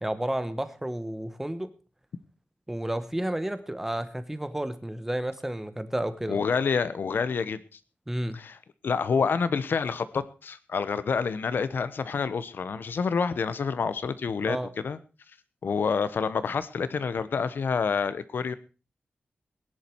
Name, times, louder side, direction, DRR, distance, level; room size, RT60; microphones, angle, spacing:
voice 1, 0.0-1.7 2.7-6.4 8.1-8.4 14.5-14.7, right 1 dB, 10° right, 11 dB, 1.1 m, -31 dB
voice 2, 6.3-7.6 8.3-8.6 8.8-15.0 15.6-18.6, left 5 dB, 65° left, 14 dB, 1.0 m, -28 dB
19.0 x 10.5 x 4.5 m, 0.34 s
wide cardioid pair, 170°, 4 cm